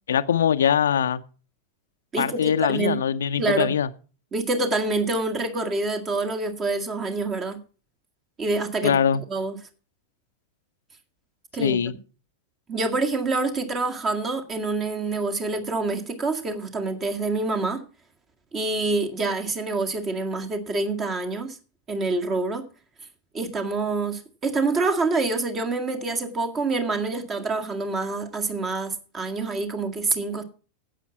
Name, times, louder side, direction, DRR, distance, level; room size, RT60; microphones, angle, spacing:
voice 1, 0.1-1.2 2.2-3.9 8.8-9.2 11.6-11.9, left 8 dB, 65° left, 0.6 m, -22 dB
voice 2, 2.1-3.0 3.4-3.7 4.3-7.6 8.4-9.0 9.3-9.6 11.5-11.8 12.7-17.8 18.5-21.6 21.9-22.7 23.3-30.4, right 3 dB, 25° right, 1.9 m, -26 dB
11.5 x 8.5 x 5.9 m
figure-of-eight pair, 90°, 0 cm